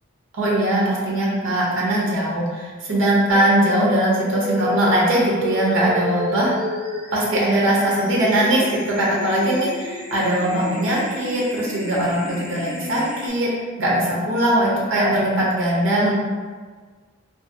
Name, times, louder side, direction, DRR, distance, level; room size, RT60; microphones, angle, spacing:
voice 1, 0.4-6.5 7.1-13.5 13.8-16.1, right 1 dB, 75° right, -5 dB, 0.7 m, -20 dB
sound 1, 3.3-13.3, equal, 10° left, 0.6 m, -31 dB
2.6 x 2.5 x 2.6 m, 1.5 s
head